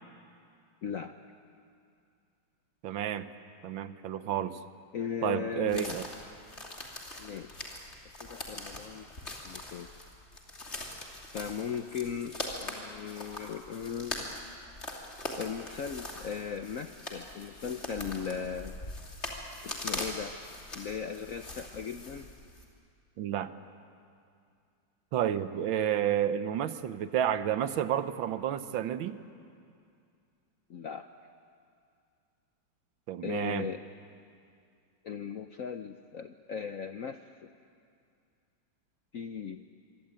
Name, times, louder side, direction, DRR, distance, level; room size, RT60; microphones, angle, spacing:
voice 1, 0.8-1.2 4.9-6.0 7.2-7.6 8.2-9.1 9.4-9.9 11.3-14.3 15.4-18.8 19.6-20.3 20.7-22.3 25.5-25.7 30.7-31.1 33.2-33.8 35.0-37.5 39.1-39.6, left 7 dB, 65° left, 8 dB, 0.8 m, -38 dB
voice 2, 2.8-3.3 3.6-4.6 5.2-6.1 23.2-23.5 25.1-29.2 33.1-33.7, right 10 dB, 75° right, 12 dB, 1.6 m, -30 dB
sound 1, 5.7-22.6, left 2 dB, 30° left, 3.2 m, -42 dB
25.5 x 23.0 x 8.9 m, 2.4 s
omnidirectional pair, 2.3 m